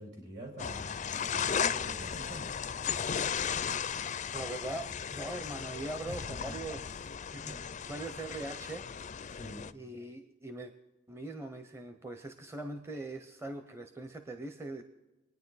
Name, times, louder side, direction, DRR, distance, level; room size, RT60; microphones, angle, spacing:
voice 1, 0.0-2.5 6.1-6.5 7.4-7.7 9.3-9.7, right 1 dB, 60° right, 2 dB, 4.6 m, -46 dB
sound 1, 0.6-9.7, left 7 dB, 40° left, 0.4 m, -36 dB
voice 2, 4.3-7.6 7.9-8.9 9.7-10.7 11.1-14.8, right 2 dB, 15° right, 7 dB, 0.7 m, -41 dB
25.5 x 9.7 x 4.0 m, 1.1 s
head